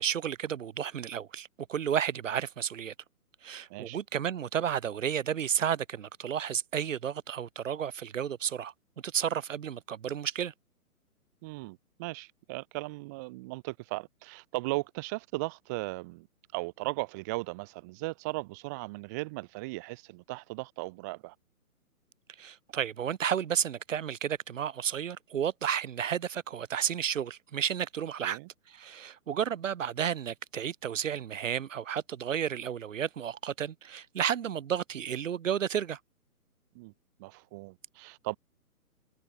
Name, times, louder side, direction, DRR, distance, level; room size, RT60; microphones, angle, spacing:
voice 1, 0.0-2.9 3.4-8.7 9.0-10.5 22.4-28.4 28.7-36.0, right 9 dB, 55° right, 3.0 m, -32 dB
voice 2, 3.7-4.0 11.4-16.3 16.5-21.4 28.2-28.5 36.7-36.9 37.2-38.4, right 24 dB, 10° right, 0.7 m, -37 dB
hypercardioid pair, 150°, 45 cm